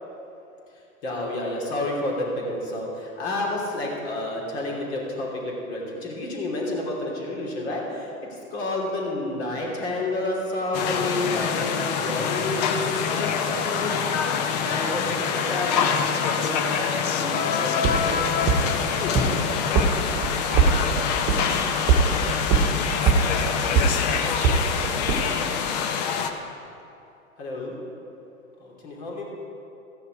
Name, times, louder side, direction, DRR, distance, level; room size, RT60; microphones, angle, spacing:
voice 1, 1.0-14.0 14.6-15.9 16.4-16.9 17.1-18.7 19.0-19.2 27.4-27.8 28.6-29.3, left 2 dB, 45° left, -2 dB, 3.0 m, -30 dB
sound 1, 10.7-26.3, left 7 dB, 30° left, 0.7 m, -25 dB
sound 2, 17.8-17.9 18.5-18.6 19.2-19.3 19.8-19.9 20.2-20.7 21.3-21.4 21.9-22.0 22.5-22.6 23.1-23.2 23.8-23.9 24.4-24.5 25.1-25.2, right 7 dB, 25° right, 1.3 m, -18 dB
13.5 x 9.7 x 4.7 m, 2.7 s
figure-of-eight pair, 105°, 43 cm